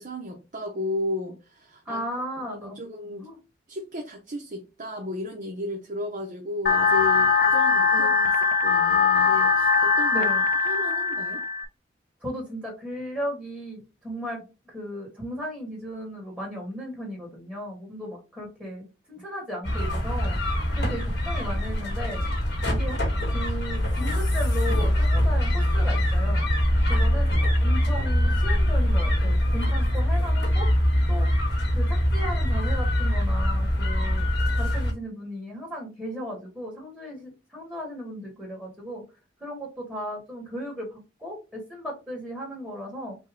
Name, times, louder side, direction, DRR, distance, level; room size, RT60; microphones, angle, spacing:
voice 1, 0.0-2.0 2.4-3.3 3.7-8.1 8.4-10.3 10.6-11.4, left 1 dB, 45° right, 0.8 m, -34 dB
voice 2, 1.8-2.8 3.2-3.4 7.9-8.3 10.1-10.4 12.2-20.4 20.7-22.2 22.7-23.0 23.2-26.5 26.9-27.3 27.6-31.3 31.7-39.0 39.4-43.2, equal, 5° right, 1.5 m, -36 dB
sound 1, 6.7-11.7, left 5 dB, 50° left, 0.6 m, -21 dB
sound 2, 19.6-34.9, equal, 65° left, 1.3 m, -23 dB
5.4 x 2.2 x 3.6 m
head